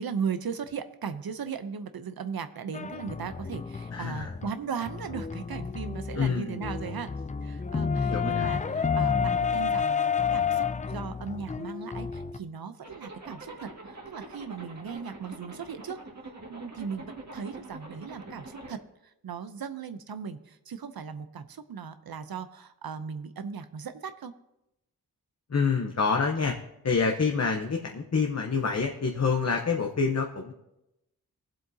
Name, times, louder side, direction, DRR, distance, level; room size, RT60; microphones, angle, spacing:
voice 1, 0.0-7.1 7.4-16.0 16.2-24.3, right 6 dB, 75° right, 10 dB, 0.7 m, -37 dB
sound 1, 2.7-12.4, left 6 dB, 20° left, 0.3 m, -30 dB
voice 2, 3.9-4.3 6.2-6.6 8.0-8.5 25.5-26.5 26.8-30.5, left 5 dB, 45° left, 2 dB, 0.9 m, -27 dB
Zipper (clothing), 12.8-18.8, right 2 dB, 45° right, 2.0 m, -45 dB
20.5 x 7.7 x 2.8 m, 0.90 s
wide cardioid pair, 90°, 36 cm